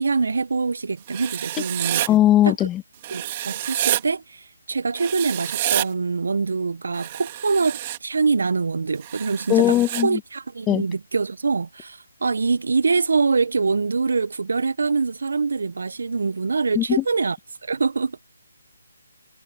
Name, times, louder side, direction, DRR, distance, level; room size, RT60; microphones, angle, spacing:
voice 1, 0.0-2.0 2.4-2.5 3.1-9.8 10.0-17.4 17.6-18.2, right 4 dB, 65° right, 1.4 m, -24 dB
Writing, 1.1-2.1 3.0-4.0 4.9-5.9 6.9-8.0 9.0-10.0, right 13 dB, 30° right, 3.5 m, -28 dB
voice 2, 2.1-2.8 9.5-10.2 10.7-10.8 16.8-17.0, left 13 dB, 15° left, 2.1 m, -18 dB
figure-of-eight pair, 150°, 0 cm